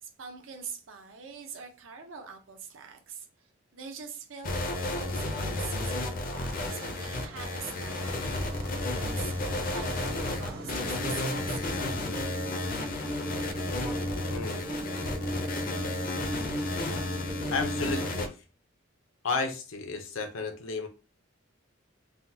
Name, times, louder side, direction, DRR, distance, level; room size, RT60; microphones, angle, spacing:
voice 1, 0.0-4.5 4.9-6.0 6.7-9.3 9.7-12.0, right 6 dB, 75° right, 0.7 m, -44 dB
sound 1, 4.4-18.3, left 2 dB, 45° left, 0.5 m, -32 dB
sound 2, 6.3-12.1, right 1 dB, 55° right, 1.0 m, -45 dB
sound 3, 7.5-18.1, right 1 dB, 10° right, 0.5 m, -38 dB
voice 2, 14.2-14.6 17.5-18.4 19.2-20.9, left 4 dB, 85° left, 0.6 m, -32 dB
3.5 x 2.2 x 2.7 m
head